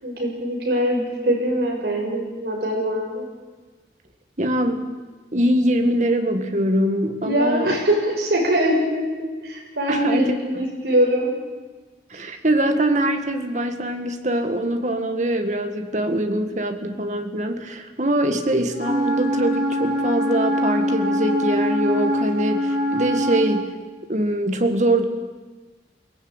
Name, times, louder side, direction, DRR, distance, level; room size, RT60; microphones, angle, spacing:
voice 1, 0.0-3.2 7.2-11.3, equal, 65° right, 0 dB, 6.3 m, -22 dB
voice 2, 4.4-4.8 5.3-7.7 9.9-10.6 12.1-23.7 24.1-25.0, right 1 dB, 40° right, 6 dB, 1.8 m, -23 dB
Wind instrument woodwind instrument, 18.7-23.5, equal, 50° left, 7.5 m, -23 dB
22.5 x 17.0 x 9.0 m, 1.4 s
head